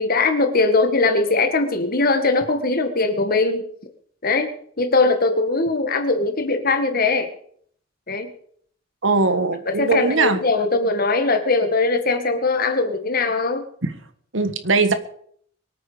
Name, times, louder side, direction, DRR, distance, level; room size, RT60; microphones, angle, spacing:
voice 1, 0.0-3.6 4.2-7.3 8.1-8.3 9.7-13.6, left 3 dB, 50° left, 7 dB, 1.9 m, -20 dB
voice 2, 9.0-10.4 13.8-13.9 14.3-14.9, right 3 dB, 75° right, 10 dB, 1.6 m, -20 dB
23.5 x 8.9 x 5.1 m, 0.62 s
head